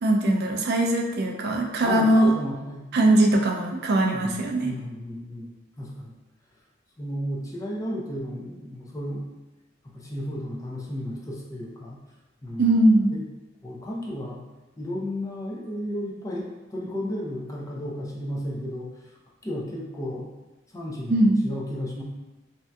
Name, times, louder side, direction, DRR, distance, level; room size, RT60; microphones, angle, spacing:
voice 1, 0.0-2.3 2.9-4.7 12.6-13.1 21.1-21.3, right 1 dB, 60° right, 1 dB, 0.4 m, -21 dB
voice 2, 1.8-2.9 4.1-5.5 5.8-6.2 7.0-9.2 9.9-12.0 12.4-12.8 13.1-13.2 13.6-14.4 14.8-16.5 16.7-19.1 19.4-20.3 20.7-21.2 21.4-22.0, equal, 20° left, -3 dB, 0.5 m, -33 dB
3.3 x 2.7 x 2.2 m, 1.1 s
head